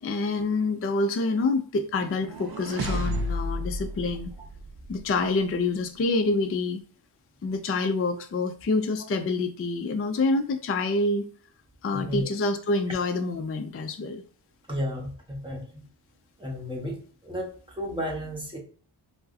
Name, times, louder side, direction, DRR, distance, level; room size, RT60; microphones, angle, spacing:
voice 1, 0.0-4.3 4.9-6.8 7.4-11.2 11.8-14.2, left 3 dB, 30° left, 7 dB, 0.4 m, -27 dB
sound 1, 1.9-5.1, equal, 50° right, 0.6 m, -32 dB
voice 2, 11.9-12.3 14.7-15.8 16.4-18.6, equal, 10° right, -2 dB, 1.2 m, -33 dB
4.5 x 2.1 x 2.7 m, 0.43 s
wide cardioid pair, 60°, 49 cm